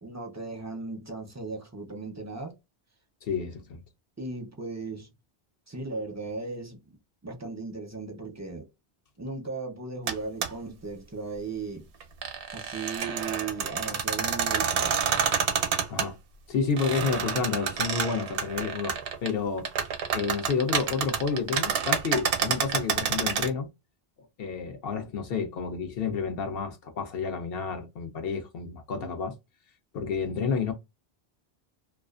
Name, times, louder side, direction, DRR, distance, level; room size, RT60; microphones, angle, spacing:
voice 1, 0.0-2.5 4.2-5.1 5.7-6.8 7.2-8.7 9.2-11.9 12.5-15.0 21.6-21.7, right 3 dB, 20° right, 0.5 m, -36 dB
voice 2, 3.2-3.8 15.9-16.2 16.5-19.7 20.1-23.7 24.4-29.3 29.9-30.7, left 5 dB, 65° left, 0.8 m, -30 dB
sound 1, 10.1-10.2 10.4-10.5 12.0-16.1 16.8-19.3 19.6-23.5, right 7 dB, 85° right, 0.9 m, -28 dB
2.4 x 2.3 x 2.4 m
omnidirectional pair, 1.1 m